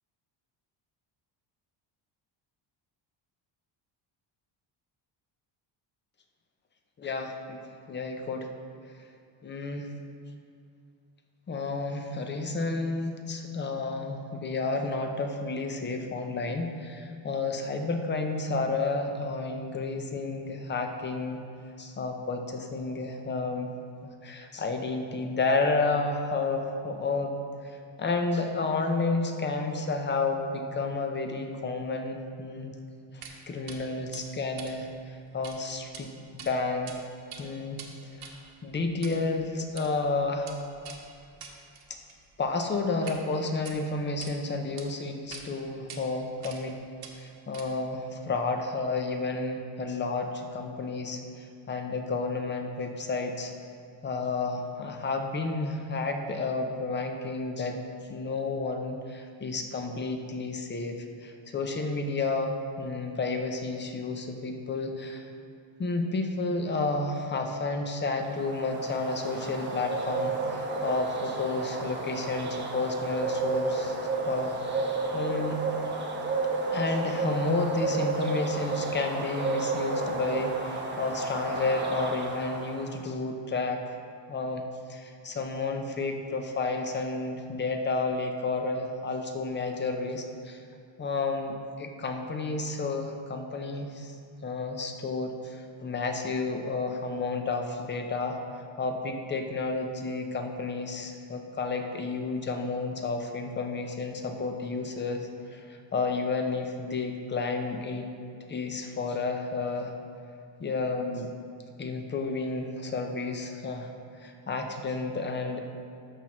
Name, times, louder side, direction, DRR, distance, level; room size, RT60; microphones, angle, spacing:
voice 1, 7.0-7.6 7.9-8.5 9.4-9.9 11.5-21.4 21.8-23.7 24.2-27.4 27.6-32.7 33.1-37.1 37.4-37.8 38.1-38.3 38.6-40.6 42.4-46.8 47.1-53.5 54.0-57.8 58.1-65.3 65.8-74.0 74.3-75.6 76.7-84.0 84.3-84.6 84.9-90.6 91.0-94.2 94.4-98.4 98.8-108.1 108.5-109.9 110.6-111.3 111.8-113.9 114.2-115.6, left 3 dB, 25° left, 4 dB, 0.6 m, -31 dB
sound 1, 33.2-33.4 33.7-33.8 34.1-35.6 35.8-36.0 36.4-37.0 37.2-43.2 43.5-44.3 44.8-44.9 45.3-45.5 45.9-46.0 46.4-46.7 47.0-47.9, right 6 dB, 50° right, 1.0 m, -46 dB
sound 2, 68.2-82.8, right 3 dB, 20° right, 0.8 m, -32 dB
13.5 x 5.9 x 3.0 m, 2.4 s
cardioid pair, 145°, 49 cm